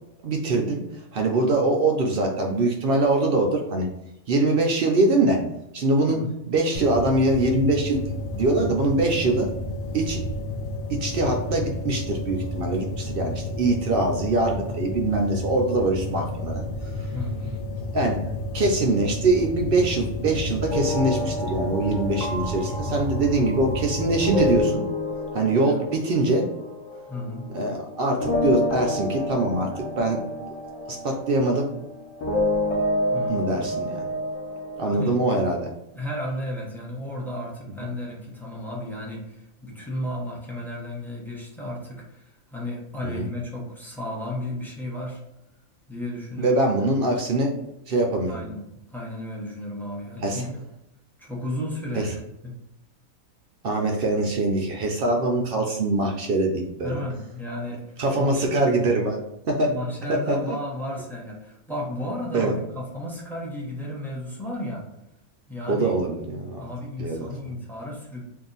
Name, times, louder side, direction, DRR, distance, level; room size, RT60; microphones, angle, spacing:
voice 1, 0.2-0.8 1.1-3.9 4.3-5.4 5.7-6.2 6.5-8.0 8.3-9.5 9.9-10.2 10.9-16.6 17.9-18.2 18.5-24.8 25.3-26.5 27.5-30.2 30.9-31.7 33.3-34.0 34.8-35.7 43.0-43.2 46.4-47.5 47.9-48.4 50.2-50.4 52.0-52.1 53.6-57.0 58.0-59.2 59.5-59.7 60.1-60.6 62.3-62.5 65.7-66.7 67.0-67.3, right 2 dB, 70° right, 1 dB, 0.5 m, -23 dB
sound 1, 6.7-24.6, left 2 dB, 85° left, 0.4 m, -31 dB
voice 2, 17.1-17.5 25.7-25.8 27.1-27.5 33.1-33.6 34.8-35.2 35.9-45.2 45.9-46.6 48.3-50.6 51.2-52.6 56.8-57.9 58.1-59.0 59.7-64.8 65.5-65.9 66.5-68.2, left 1 dB, ahead, -4 dB, 0.4 m, -34 dB
sound 2, 20.7-27.9 28.2-34.9, left 1 dB, 70° left, 1.0 m, -29 dB
2.7 x 2.4 x 3.8 m, 0.85 s
omnidirectional pair, 1.5 m